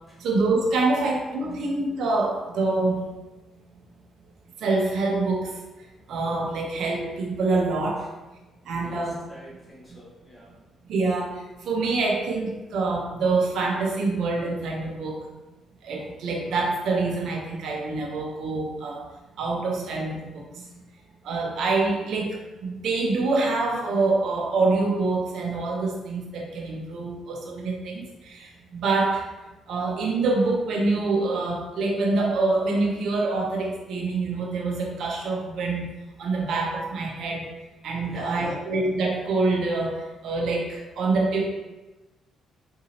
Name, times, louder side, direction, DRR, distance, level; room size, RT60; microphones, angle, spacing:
voice 1, 0.2-3.1 4.6-5.5 6.1-8.1 8.7-9.2 10.9-15.2 15.8-19.0 19.4-20.7 21.2-29.2 29.7-35.9 36.2-37.5 37.8-41.5, right 3 dB, 75° right, 0 dB, 0.7 m, -26 dB
voice 2, 8.7-10.6 38.0-38.7, equal, 25° left, -7 dB, 1.4 m, -47 dB
3.9 x 2.7 x 2.8 m, 1.1 s
cardioid pair, 90°, 0 cm